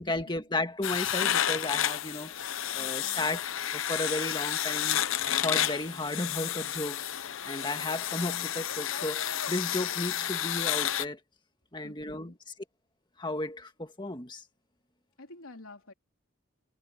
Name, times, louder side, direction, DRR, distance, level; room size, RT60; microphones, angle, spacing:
voice 1, 0.0-2.3 2.7-5.0 5.3-11.2 11.7-12.4 13.2-14.4, left 2 dB, 20° left, 1.9 m, -34 dB
Cutting the carwash, 0.8-11.1, left 11 dB, 70° left, 0.7 m, -31 dB
voice 2, 2.8-3.3 11.8-12.3 15.2-15.9, left 2 dB, 85° left, 3.6 m, -49 dB
head